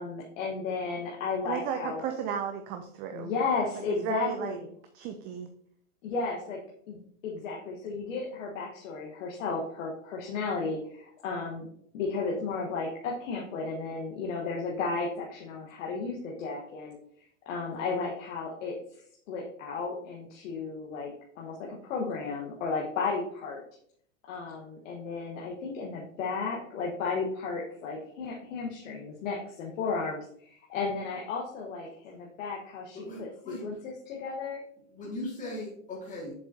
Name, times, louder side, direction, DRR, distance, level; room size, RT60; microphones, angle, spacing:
voice 1, 0.0-2.1 3.1-4.6 6.0-6.6 6.9-11.7 11.9-17.0 17.4-18.8 19.3-21.1 21.4-23.6 24.3-34.6, left 4 dB, 70° left, -2 dB, 1.4 m, -34 dB
voice 2, 1.4-3.3 3.8-4.6 4.9-5.5, right 7 dB, 25° right, 6 dB, 0.4 m, -34 dB
voice 3, 33.0-33.6 34.9-36.3, left 1 dB, 20° left, -5 dB, 2.1 m, -38 dB
7.2 x 4.8 x 2.7 m, 0.64 s
hypercardioid pair, 125°, 40 cm